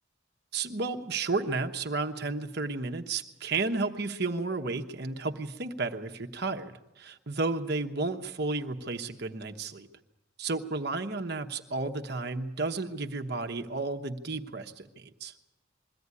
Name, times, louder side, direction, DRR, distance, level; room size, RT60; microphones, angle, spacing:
voice 1, 0.5-9.9 10.4-15.3, right 3 dB, 55° right, 6 dB, 1.0 m, -32 dB
22.0 x 15.0 x 9.7 m, 0.95 s
head